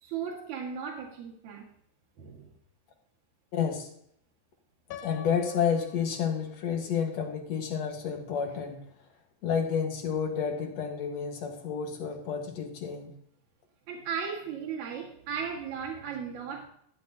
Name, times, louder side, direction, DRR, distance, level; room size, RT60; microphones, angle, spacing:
voice 1, 0.0-1.6 2.2-2.5 13.9-16.7, right 7 dB, 75° right, -1 dB, 3.0 m, -36 dB
voice 2, 3.5-3.9 5.0-8.8 9.4-13.2, left 7 dB, 65° left, 3 dB, 2.4 m, -30 dB
Piano, 4.9-6.9, left 8 dB, 85° left, 2.2 m, -46 dB
13.5 x 10.0 x 2.7 m, 0.67 s
omnidirectional pair, 3.4 m